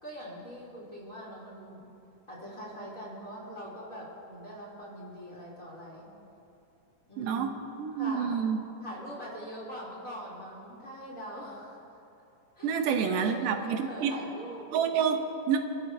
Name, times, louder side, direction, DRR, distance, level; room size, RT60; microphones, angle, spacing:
voice 1, 0.0-1.8 2.3-6.1 7.1-7.4 8.0-8.4 8.8-11.8 12.5-14.6, equal, 25° left, -6 dB, 3.2 m, -42 dB
voice 2, 7.2-8.6 12.6-14.2 14.7-15.6, right 7 dB, 90° right, 5 dB, 2.5 m, -28 dB
28.0 x 13.0 x 2.7 m, 2.8 s
omnidirectional pair, 3.7 m